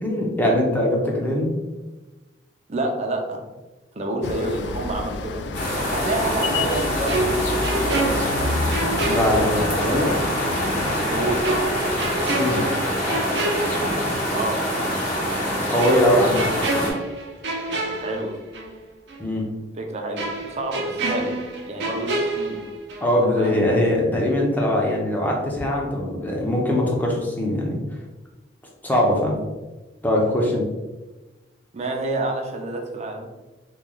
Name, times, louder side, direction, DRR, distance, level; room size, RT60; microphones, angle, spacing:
voice 1, 0.0-1.5 9.0-10.1 12.2-12.6 15.7-16.4 19.2-19.5 23.0-27.8 28.8-29.4 30.0-30.6, left 1 dB, 10° left, -2 dB, 0.7 m, -21 dB
voice 2, 2.7-3.4 3.9-5.6 5.9-8.3 11.1-11.4 14.3-14.7 17.9-18.3 19.8-21.3 21.7-22.6 23.4-23.6 31.7-33.3, right 2 dB, 40° right, 2 dB, 0.5 m, -28 dB
sound 1, 4.2-12.5, left 3 dB, 85° left, 0.3 m, -30 dB
sound 2, 5.5-16.9, equal, 45° left, 1.1 m, -25 dB
sound 3, 7.1-10.0 10.3-10.5 11.4-14.4 14.7-14.9 15.8-18.8 19.1-19.2 20.2-23.2 23.4-23.7, right 2 dB, 75° right, 0.7 m, -28 dB
3.0 x 2.4 x 3.7 m, 1.1 s
head